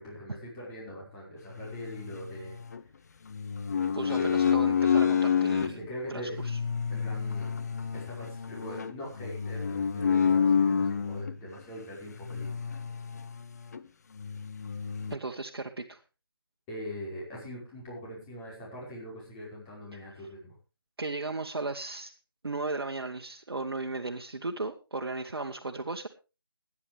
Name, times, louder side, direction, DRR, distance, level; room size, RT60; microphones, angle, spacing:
voice 1, 0.0-2.6 4.0-4.3 5.6-6.4 6.9-7.7 7.9-12.6 16.7-20.5, equal, 15° left, -5 dB, 5.3 m, -42 dB
sound 1, 1.6-2.8 3.3-5.7 6.3-11.4 12.2-13.4 13.7-13.8 14.2-15.2, left 7 dB, 45° left, 0.8 m, -28 dB
voice 2, 3.9-6.6 15.1-16.0 20.2-20.3 21.0-22.1 22.4-26.1, right 3 dB, 75° right, 3 dB, 1.4 m, -36 dB
21.0 x 9.9 x 3.4 m, 0.30 s
figure-of-eight pair, 155°, 13 cm